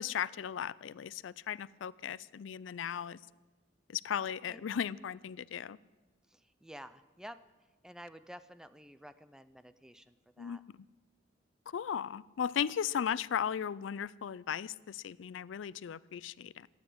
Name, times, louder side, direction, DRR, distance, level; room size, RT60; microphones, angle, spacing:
voice 1, 0.0-3.2 3.9-5.8 10.4-10.6 11.7-16.7, left 8 dB, 90° left, 20 dB, 0.4 m, -36 dB
voice 2, 4.1-4.6 6.3-10.6, equal, 5° right, 12 dB, 0.5 m, -52 dB
13.5 x 9.3 x 8.3 m, 1.2 s
head